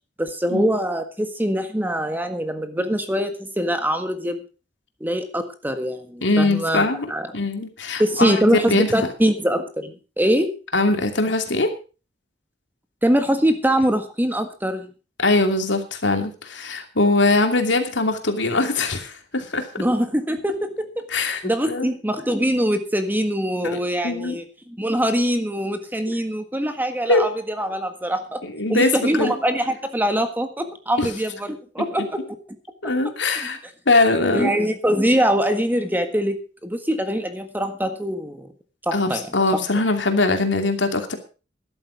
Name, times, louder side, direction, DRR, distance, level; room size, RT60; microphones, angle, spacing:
voice 1, 0.2-4.4 5.0-7.3 8.0-10.5 13.0-14.9 19.8-21.0 21.4-28.4 28.7-32.2 33.4-33.5 34.3-36.4 36.6-38.5 38.8-39.6, equal, 10° right, 7 dB, 1.6 m, -23 dB
voice 2, 6.2-7.1 7.3-8.9 10.7-11.7 15.2-19.6 21.1-21.9 23.6-23.8 24.0-24.4 27.1-27.2 28.4-29.3 31.0-31.1 32.8-33.6 33.9-34.5 38.9-41.1, left 2 dB, 70° left, 5 dB, 2.7 m, -21 dB
13.0 x 11.5 x 5.1 m, 0.34 s
head